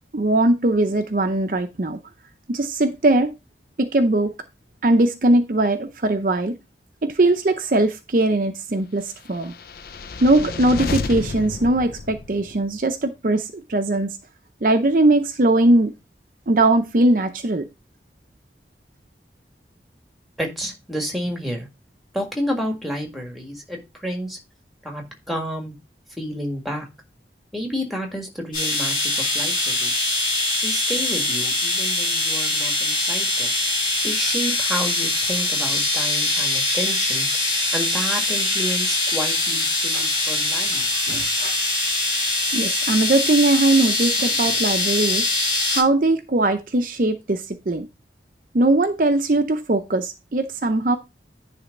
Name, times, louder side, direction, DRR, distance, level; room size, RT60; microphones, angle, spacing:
voice 1, 0.1-2.0 2.5-3.3 3.8-4.3 4.8-6.6 7.0-9.5 10.2-14.2 14.6-15.9 16.5-17.7 39.9-40.1 40.7-41.6 42.5-45.3 45.7-47.9 48.5-51.0, right 2 dB, 50° right, 0.6 m, -20 dB
sound 1, 9.4-12.8, left 4 dB, 55° left, 0.5 m, -31 dB
voice 2, 20.4-21.7 22.1-24.4 24.8-25.7 26.2-26.9 27.5-30.0 30.6-33.5 34.0-37.3 37.7-40.8, equal, ahead, 1.8 m, -30 dB
sound 2, 28.5-45.8, left 2 dB, 25° left, 5.1 m, -23 dB
10.0 x 3.4 x 5.2 m
head